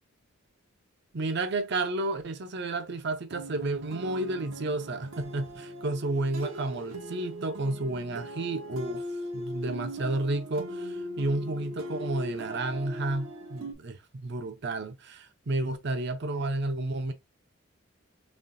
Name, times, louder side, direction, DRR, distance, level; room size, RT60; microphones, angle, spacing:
voice 1, 1.1-9.0 9.3-17.1, right 2 dB, 55° right, 0.6 m, -31 dB
sound 1, 3.3-13.7, equal, 85° right, 1.0 m, -40 dB
4.3 x 3.0 x 2.5 m
head